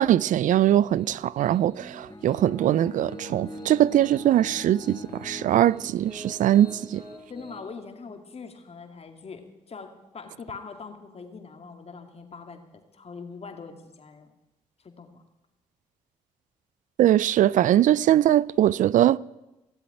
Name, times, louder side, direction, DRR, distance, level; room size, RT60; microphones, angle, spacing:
voice 1, 0.0-7.0 17.0-19.2, right 12 dB, 65° right, 0.4 m, -21 dB
Piano, 0.7-7.6, right 2 dB, 40° right, 4.5 m, -45 dB
Bowed string instrument, 2.1-6.3, left 2 dB, 30° left, 1.9 m, -43 dB
voice 2, 7.3-14.3 14.8-15.2, left 5 dB, 45° left, 2.5 m, -42 dB
16.5 x 7.9 x 9.9 m
supercardioid pair, 55°, 14 cm